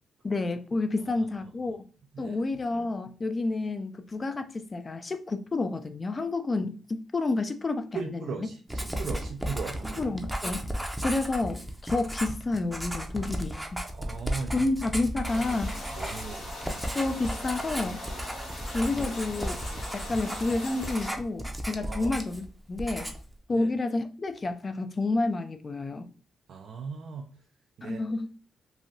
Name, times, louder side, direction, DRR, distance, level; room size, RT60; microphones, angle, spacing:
voice 1, 0.2-1.8 2.2-8.5 10.0-10.7 11.0-13.8 14.5-15.8 16.9-18.0 18.7-19.6 19.9-23.1 23.5-26.1 27.8-28.3, left 2 dB, 35° left, 0.4 m, -30 dB
voice 2, 7.9-10.1 13.9-14.7 15.9-16.5 21.8-22.2 23.5-23.7 26.5-27.3 27.8-28.0, right 5 dB, 75° right, 0.4 m, -37 dB
Writing, 8.7-22.5 22.8-23.3, equal, 5° right, 0.6 m, -35 dB
sound 1, 15.2-21.1, left 1 dB, 85° left, 1.6 m, -40 dB
3.2 x 2.4 x 2.6 m
cardioid pair, 65°, 0 cm